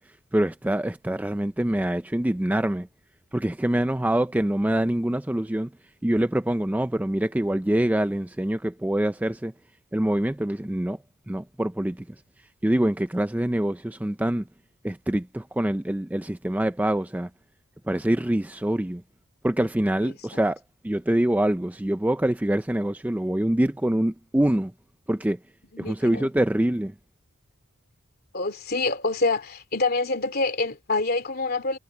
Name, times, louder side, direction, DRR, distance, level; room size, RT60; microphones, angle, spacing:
voice 1, 0.3-2.9 3.3-5.7 6.0-9.5 9.9-11.0 11.3-12.1 12.6-14.4 14.8-17.3 17.9-19.0 19.4-20.6 20.8-24.7 25.1-25.4 25.8-26.9, right 1 dB, 5° right, 0.4 m, -25 dB
voice 2, 25.7-26.3 28.3-31.8, left 3 dB, 45° left, 2.9 m, -26 dB
head